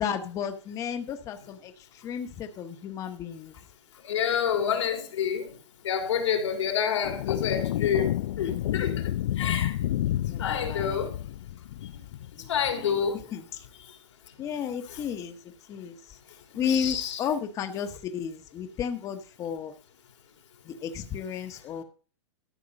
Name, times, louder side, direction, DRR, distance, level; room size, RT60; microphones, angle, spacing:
voice 1, 0.0-3.5 10.3-11.0 12.4-13.0 13.3-13.7 14.4-15.4 15.7-16.2 16.5-19.8 20.6-21.8, left 8 dB, 20° left, 1.0 m, -33 dB
voice 2, 4.0-5.5 5.8-8.1 8.4-9.7 10.4-11.2 12.5-13.2 14.9-15.0 16.6-17.2, left 8 dB, 90° left, 3.0 m, -28 dB
sound 1, 7.0-12.7, left 13 dB, 75° left, 0.4 m, -30 dB
13.0 x 6.8 x 5.2 m
supercardioid pair, 160°, 15 cm